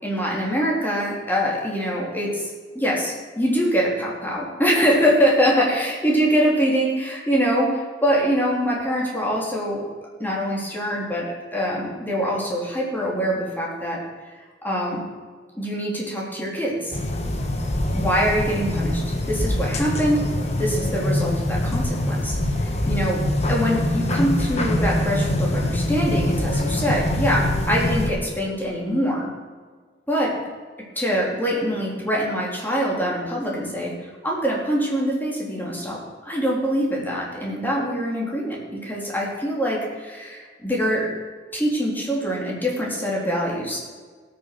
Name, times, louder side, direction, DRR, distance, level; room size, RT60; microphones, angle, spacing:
voice 1, 0.0-2.5 2.7-9.9 10.2-14.0 14.6-15.0 15.5-17.0 17.9-19.0 19.3-20.2 20.5-22.4 22.6-23.2 23.5-29.3 30.1-30.4 30.9-41.1 41.5-43.8, equal, 10° left, -3 dB, 3.4 m, -24 dB
sound 1, 16.9-28.1, left 1 dB, 40° left, 1.6 m, -24 dB
18.0 x 7.0 x 6.1 m, 1.5 s
head